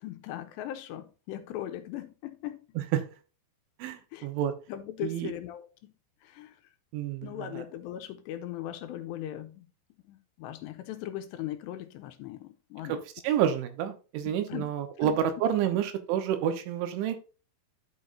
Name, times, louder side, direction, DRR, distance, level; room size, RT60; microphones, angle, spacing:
voice 1, 0.0-2.6 4.1-4.3 4.7-5.9 6.2-6.6 7.2-9.7 10.0-13.0 14.3-14.7 15.0-15.2, left 12 dB, 85° left, 2.8 m, -39 dB
voice 2, 3.8-4.5 5.0-5.3 6.9-7.6 12.9-13.0 13.2-17.2, right 9 dB, 85° right, 3.6 m, -29 dB
13.0 x 5.3 x 2.6 m
omnidirectional pair, 5.3 m